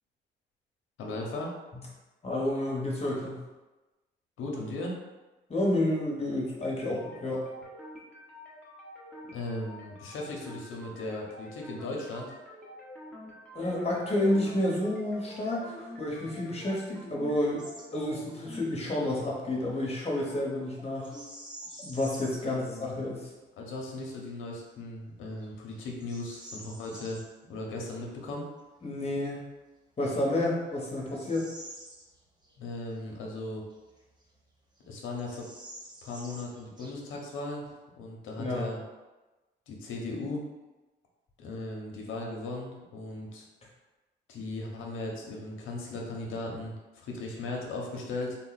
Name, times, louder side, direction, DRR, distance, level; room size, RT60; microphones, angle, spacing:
voice 1, 1.0-1.5 4.4-5.0 9.3-12.3 22.4-22.9 23.6-27.2 27.5-28.5 32.6-33.6 34.9-35.5 36.0-38.8 39.7-40.4 41.4-43.4 44.3-48.4, left 2 dB, 85° left, -1 dB, 0.9 m, -37 dB
voice 2, 2.2-3.4 5.5-7.5 13.5-17.6 17.9-21.1 21.8-23.3 28.8-29.4 30.0-31.5 38.4-38.7, left 1 dB, 30° left, -3 dB, 1.2 m, -30 dB
sound 1, 6.6-22.6, left 1 dB, 5° left, 1.0 m, -48 dB
Bird vocalization bird call bird song, 17.6-17.9 18.2-18.5 21.0-22.5 23.0-23.1 23.8-24.2 24.7-24.8 25.4-27.3 29.4-29.5 30.1-32.6 32.9-33.0 33.7-34.5 34.8-34.9 35.1-37.3, right 1 dB, 20° right, 0.8 m, -48 dB
3.8 x 2.2 x 4.0 m, 1.1 s
cardioid pair, 90°, 20 cm